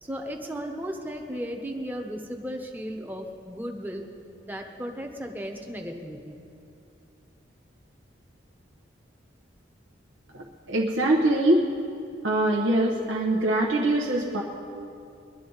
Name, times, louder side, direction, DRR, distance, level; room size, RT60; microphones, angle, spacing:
voice 1, 0.0-4.1 4.4-6.4, equal, 10° right, 3 dB, 0.9 m, -35 dB
voice 2, 10.3-11.6 12.2-14.4, right 1 dB, 85° right, -2 dB, 1.1 m, -23 dB
21.5 x 11.0 x 4.0 m, 2.6 s
head